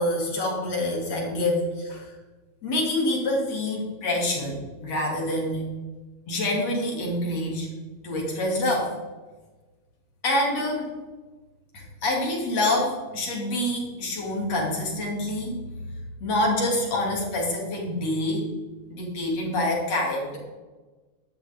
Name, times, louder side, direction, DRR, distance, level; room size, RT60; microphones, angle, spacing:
voice 1, 0.0-2.1 2.6-5.8 6.3-7.7 8.0-8.9 10.2-10.9 11.7-15.6 16.2-18.5 18.9-20.4, left 1 dB, 60° left, -2 dB, 3.9 m, -26 dB
12.5 x 11.5 x 3.6 m, 1.3 s
omnidirectional pair, 3.4 m